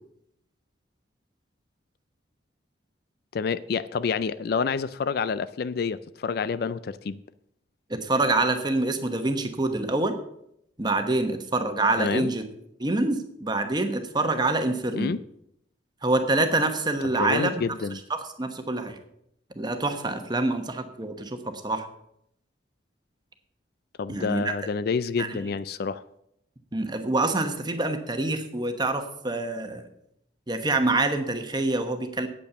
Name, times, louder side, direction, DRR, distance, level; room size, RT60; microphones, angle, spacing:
voice 1, 3.3-7.2 12.0-12.3 14.9-15.2 17.2-18.0 24.0-26.0, left 5 dB, 55° left, 15 dB, 0.4 m, -28 dB
voice 2, 7.9-10.2 10.8-12.4 12.8-15.1 16.0-17.6 18.1-19.0 19.5-21.9 24.1-24.5 25.2-25.3 26.7-29.8 30.5-32.3, right 2 dB, 20° right, 7 dB, 1.0 m, -26 dB
8.5 x 8.5 x 6.7 m, 0.76 s
head